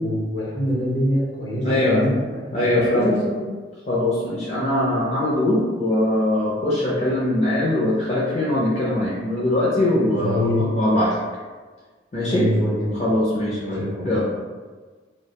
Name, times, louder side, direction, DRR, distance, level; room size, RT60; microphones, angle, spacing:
voice 1, 0.0-3.4 10.2-10.7 12.2-13.0 13.5-14.1, equal, 65° left, -6 dB, 0.9 m, -24 dB
voice 2, 1.6-2.0 2.5-3.2 3.9-11.2 12.1-12.5 13.0-14.2, left 1 dB, 35° left, -7 dB, 0.4 m, -21 dB
2.4 x 2.1 x 2.8 m, 1.4 s
head